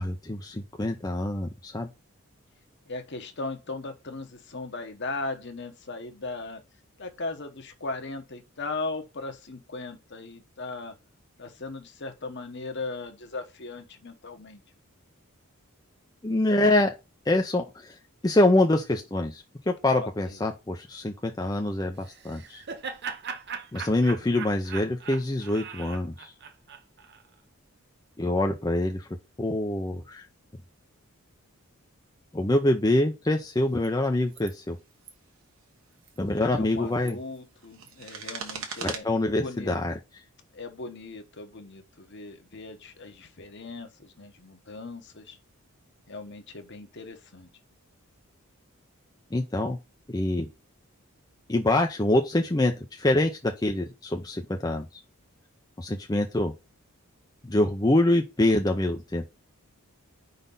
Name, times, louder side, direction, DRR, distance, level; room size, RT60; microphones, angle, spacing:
voice 1, 0.0-1.9 16.2-16.9 17.3-17.9 18.2-22.6 23.7-26.3 28.2-29.1 29.4-30.3 32.3-34.8 36.2-37.2 38.8-39.9 49.3-49.8 50.1-50.5 51.5-54.8 55.8-56.5 57.4-59.3, left 1 dB, 15° left, 0.5 m, -25 dB
voice 2, 2.9-6.6 7.0-10.9 11.4-14.6 20.0-20.4 36.4-39.8 40.5-45.4 46.1-47.5, left 3 dB, 50° left, 1.1 m, -38 dB
Laughter, 22.0-27.2, right 6 dB, 50° right, 0.8 m, -39 dB
sound 1, 33.7-33.9 34.3-34.6 34.9-35.1 35.9-36.2 36.8-39.0, right 6 dB, 65° right, 1.3 m, -39 dB
5.2 x 4.0 x 5.4 m
head